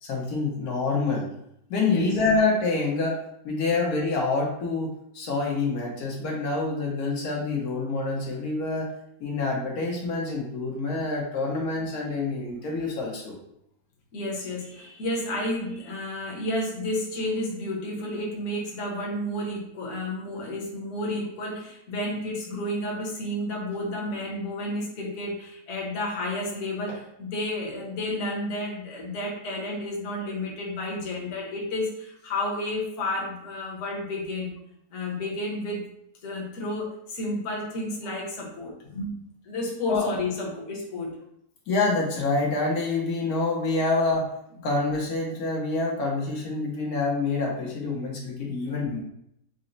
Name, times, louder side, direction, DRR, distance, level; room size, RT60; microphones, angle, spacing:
voice 1, 0.0-1.3 1.7-8.9 9.2-13.3 39.9-40.1 41.7-44.3 44.6-49.0, left 3 dB, 80° left, -2 dB, 1.2 m, -27 dB
voice 2, 1.8-2.2 14.1-34.5 34.9-35.8 36.2-39.1 39.4-41.2, left 1 dB, 55° left, -2 dB, 1.1 m, -31 dB
4.0 x 2.0 x 3.8 m, 0.75 s
omnidirectional pair, 1.6 m